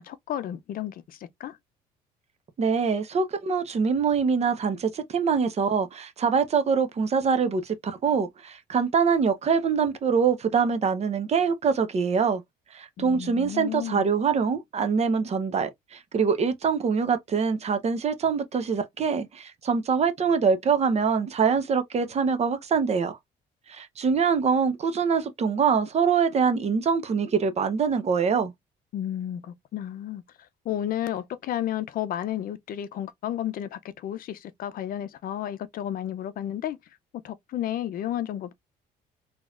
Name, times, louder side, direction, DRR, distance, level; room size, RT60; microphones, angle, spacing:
voice 1, 0.0-1.6 13.0-14.1 28.9-36.8 37.2-38.5, left 11 dB, 60° left, 0.5 m, -32 dB
voice 2, 2.6-12.4 12.7-23.2 23.7-28.5, right 6 dB, 40° right, 0.8 m, -24 dB
3.8 x 2.9 x 2.4 m
cardioid pair, 110°, 17 cm